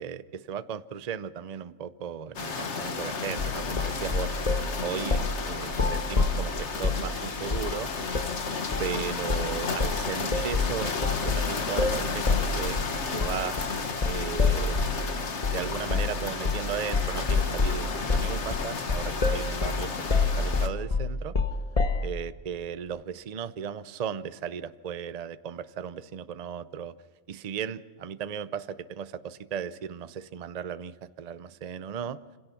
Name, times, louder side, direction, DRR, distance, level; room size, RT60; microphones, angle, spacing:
voice 1, 0.0-7.9 8.8-12.8 13.1-13.6 14.0-15.1 15.5-21.4 22.0-26.9 27.3-32.2, right 8 dB, 45° right, 14 dB, 0.6 m, -36 dB
sound 1, 2.4-20.7, left 4 dB, 60° left, 1.7 m, -33 dB
sound 2, 3.4-4.7 5.1-5.4 5.7-7.1 7.5-7.8 8.1-8.3 8.7-9.0 9.3-9.5 9.8-15.0 15.4-15.6 15.9-16.2 16.4-16.7 16.9-22.1, left 4 dB, 30° left, 1.0 m, -27 dB
26.5 x 17.0 x 5.8 m, 1.5 s
omnidirectional pair, 1.4 m